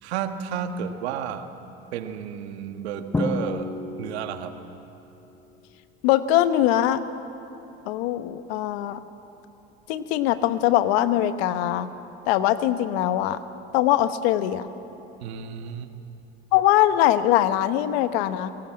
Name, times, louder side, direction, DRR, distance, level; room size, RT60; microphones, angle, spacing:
voice 1, 0.0-1.5 1.9-4.6 15.2-15.9, right 8 dB, 90° right, 7 dB, 1.5 m, -32 dB
Drum, 3.1-4.8, left 3 dB, 10° left, 0.5 m, -30 dB
voice 2, 6.0-7.0 7.8-9.0 9.9-11.9 12.2-13.4 13.7-14.7 16.5-18.5, left 13 dB, 75° left, 12 dB, 1.1 m, -22 dB
22.5 x 18.5 x 7.6 m, 3.0 s
supercardioid pair, 110°, 31 cm